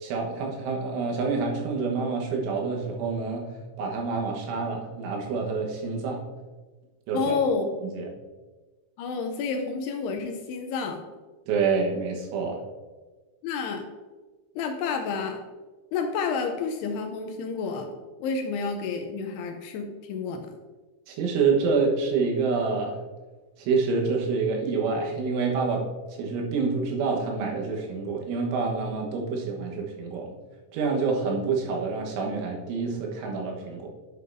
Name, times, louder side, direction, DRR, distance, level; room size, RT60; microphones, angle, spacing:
voice 1, 0.0-3.4 3.8-6.2 7.1-7.4 8.0-8.1 11.5-12.6 21.1-23.0 23.6-25.8 26.1-30.3 30.7-33.9, right 4 dB, 85° right, 0 dB, 3.6 m, -27 dB
voice 2, 7.1-7.7 9.0-11.0 13.4-13.8 14.6-15.4 15.9-17.9 18.2-20.5, left 5 dB, 80° left, 4 dB, 2.4 m, -29 dB
8.4 x 8.4 x 2.6 m, 1.3 s
omnidirectional pair, 5.3 m